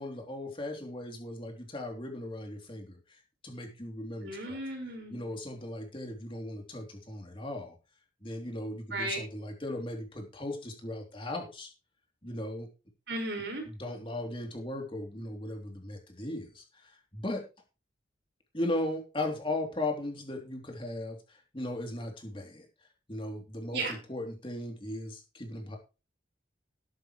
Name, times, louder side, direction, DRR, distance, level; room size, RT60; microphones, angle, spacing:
voice 1, 0.0-4.6 5.1-7.7 8.2-11.7 12.2-12.7 13.6-17.5 18.5-22.7 23.1-25.8, left 1 dB, 25° left, 2 dB, 3.1 m, -37 dB
voice 2, 4.2-5.3 8.9-9.2 13.1-13.7 23.7-23.9, right 2 dB, 60° right, 2 dB, 5.4 m, -35 dB
13.5 x 11.5 x 3.2 m, 0.31 s
head